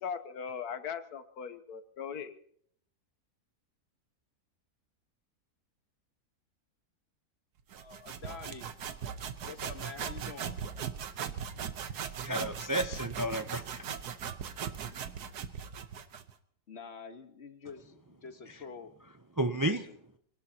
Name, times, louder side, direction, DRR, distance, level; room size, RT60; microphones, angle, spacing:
voice 1, 0.0-2.4, left 7 dB, 80° left, 11 dB, 1.4 m, -39 dB
sound 1, 7.7-16.3, right 8 dB, 85° right, 1.5 m, -39 dB
voice 2, 7.8-8.7 9.4-10.6 14.9-15.0 16.7-18.9 19.6-20.0, left 5 dB, 45° left, 7 dB, 1.5 m, -46 dB
voice 3, 12.2-13.8 19.4-19.8, right 1 dB, 30° right, 7 dB, 0.3 m, -31 dB
26.0 x 19.0 x 2.9 m, 0.65 s
omnidirectional pair, 1.7 m